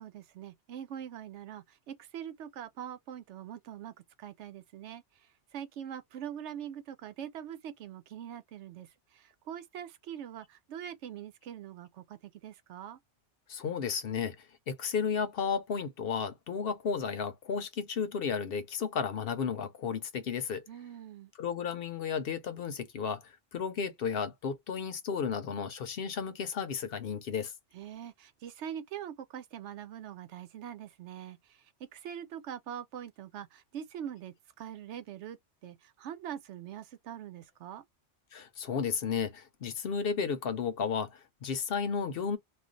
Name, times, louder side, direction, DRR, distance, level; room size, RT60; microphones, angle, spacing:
voice 1, 0.0-13.0 20.7-21.3 27.7-35.4 35.6-37.9, right 9 dB, 80° right, 0.9 m, -43 dB
voice 2, 13.5-20.6 21.4-27.5 38.3-42.4, left 6 dB, 60° left, 0.7 m, -33 dB
2.4 x 2.2 x 3.8 m
omnidirectional pair, 1.2 m